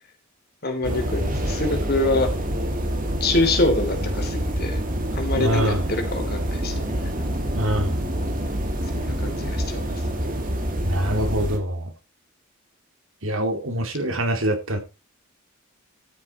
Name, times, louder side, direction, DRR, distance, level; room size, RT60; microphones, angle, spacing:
voice 1, 0.6-2.3 3.2-4.8 5.1-7.2 8.9-10.0, left 2 dB, 45° left, 3.2 m, -25 dB
sound 1, 0.8-11.6, equal, 40° right, 2.3 m, -26 dB
voice 2, 5.4-5.8 7.5-8.0 10.8-11.9 13.2-14.8, right 1 dB, 65° right, 2.4 m, -24 dB
13.0 x 7.6 x 4.3 m
head